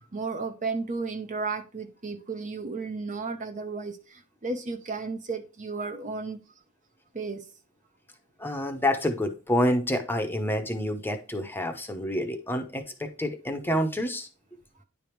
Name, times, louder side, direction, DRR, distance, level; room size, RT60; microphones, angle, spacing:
voice 1, 0.1-6.4 7.1-7.4, right 4 dB, 35° right, 0.7 m, -33 dB
voice 2, 8.4-14.3, left 1 dB, 10° left, 0.8 m, -28 dB
9.8 x 3.4 x 4.6 m
head